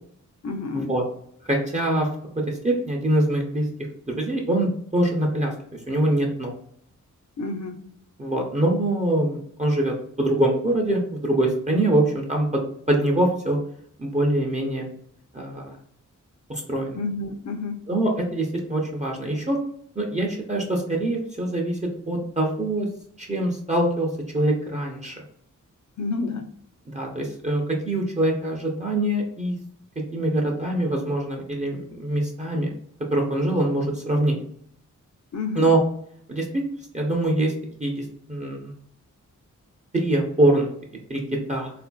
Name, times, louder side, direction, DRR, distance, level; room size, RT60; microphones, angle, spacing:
voice 1, 0.4-0.9 7.4-7.8 16.9-17.9 26.0-26.5 35.3-35.7, left 3 dB, 60° left, 6 dB, 0.5 m, -30 dB
voice 2, 1.4-2.1 2.4-3.6 4.1-6.5 8.2-13.6 14.0-14.9 15.3-15.8 16.5-17.0 17.9-19.6 20.0-21.8 22.1-22.9 23.2-24.1 24.3-25.2 26.9-29.6 30.1-32.7 33.1-34.4 35.6-35.8 36.3-36.5 36.9-37.5 37.8-38.7 39.9-40.7 41.1-41.2 41.5-41.7, right 1 dB, 25° right, 0 dB, 0.6 m, -24 dB
3.7 x 2.5 x 2.2 m, 0.67 s
wide cardioid pair, 95°, 31 cm